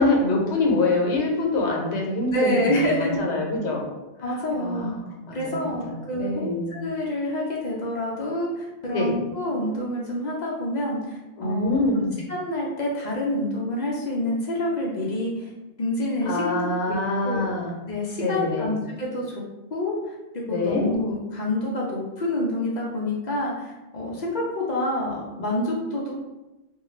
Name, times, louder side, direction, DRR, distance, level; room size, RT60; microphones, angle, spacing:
voice 1, 0.0-3.9 4.6-6.8 8.9-9.1 11.4-12.2 16.2-17.7 18.2-18.7 20.5-20.9, left 2 dB, 80° left, -1 dB, 0.9 m, -25 dB
voice 2, 2.3-3.2 4.2-5.0 5.3-15.5 15.8-16.6 16.9-17.0 17.2-17.4 17.9-19.4 19.7-26.1, left 1 dB, 55° left, -3 dB, 0.5 m, -27 dB
2.5 x 2.2 x 3.1 m, 1.0 s
omnidirectional pair, 1.2 m